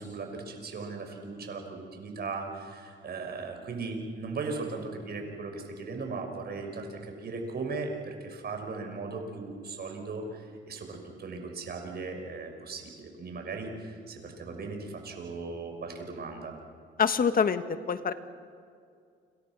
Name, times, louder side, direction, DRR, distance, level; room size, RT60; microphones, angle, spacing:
voice 1, 0.0-16.6, right 3 dB, 55° right, 3 dB, 6.1 m, -38 dB
voice 2, 17.0-18.1, left 6 dB, 45° left, 10 dB, 1.5 m, -25 dB
29.5 x 27.0 x 6.3 m, 2.3 s
cardioid pair, 90°, 20 cm